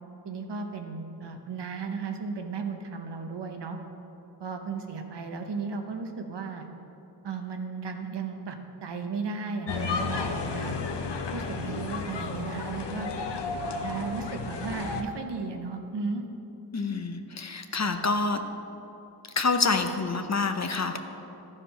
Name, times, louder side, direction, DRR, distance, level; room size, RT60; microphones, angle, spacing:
voice 1, 0.2-3.8 4.4-6.7 7.2-10.8 11.3-13.1 13.8-16.2, right 4 dB, 85° right, 5 dB, 0.9 m, -35 dB
sound 1, 9.7-15.0, left 4 dB, 85° left, 0.7 m, -32 dB
voice 2, 16.7-18.5 19.4-21.0, left 4 dB, 40° left, 7 dB, 0.7 m, -27 dB
12.5 x 4.9 x 5.5 m, 2.9 s
cardioid pair, 45°, 41 cm